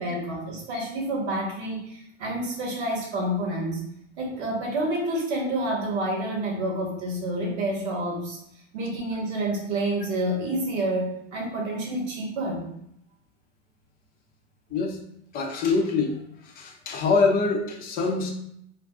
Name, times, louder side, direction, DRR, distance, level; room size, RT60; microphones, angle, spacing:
voice 1, 0.0-3.8 4.2-8.4 8.7-12.7, right 1 dB, 65° right, -1 dB, 1.2 m, -28 dB
voice 2, 15.3-16.2 16.6-18.3, left 4 dB, 25° left, 1 dB, 0.6 m, -24 dB
2.6 x 2.4 x 3.5 m, 0.73 s
hypercardioid pair, 100°, 36 cm